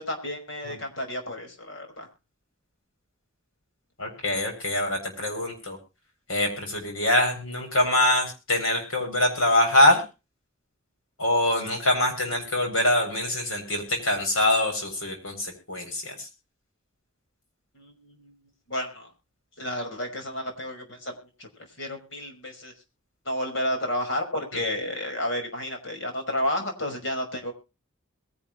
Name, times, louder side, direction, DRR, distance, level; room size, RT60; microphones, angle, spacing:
voice 1, 0.0-2.1 17.7-18.3 18.7-19.1 19.6-21.5 21.8-22.7 23.3-27.5, left 1 dB, 65° left, 4 dB, 5.6 m, -31 dB
voice 2, 4.0-5.8 6.3-10.0 11.2-16.1, left 1 dB, 85° left, 3 dB, 7.5 m, -24 dB
22.0 x 11.5 x 3.2 m, 0.31 s
head